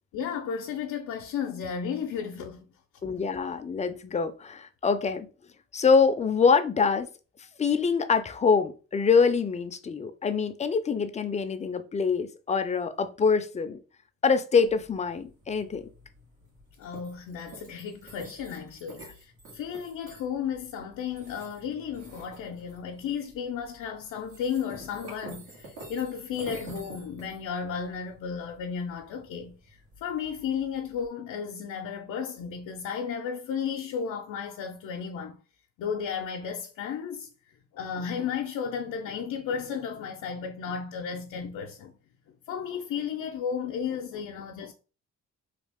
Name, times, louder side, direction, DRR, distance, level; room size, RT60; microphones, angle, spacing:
voice 1, 0.1-2.6 16.8-35.4 35.8-37.3 37.7-42.0 42.5-44.7, left 7 dB, 80° left, 0.6 m, -34 dB
voice 2, 3.0-5.3 5.7-7.1 7.6-13.8 14.2-15.9, left 5 dB, 25° left, 0.4 m, -25 dB
sound 1, 14.7-31.1, right 2 dB, 75° right, 1.8 m, -49 dB
3.2 x 2.4 x 3.4 m
cardioid pair, 90°, 30 cm